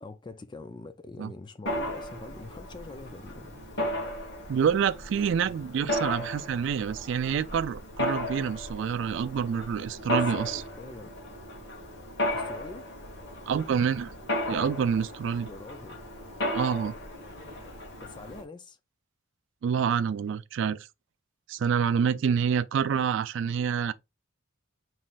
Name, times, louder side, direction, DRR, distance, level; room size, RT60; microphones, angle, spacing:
voice 1, 0.0-3.6 10.1-11.1 12.3-12.9 15.4-16.0 18.0-18.8, left 3 dB, 20° left, 0.4 m, -44 dB
Mechanisms, 1.7-18.4, left 1 dB, 55° left, 1.4 m, -35 dB
voice 2, 4.5-10.6 13.5-14.1 14.5-15.5 16.5-16.9 19.6-20.9 21.5-23.9, right 7 dB, 65° right, 0.3 m, -27 dB
5.4 x 3.1 x 2.5 m
head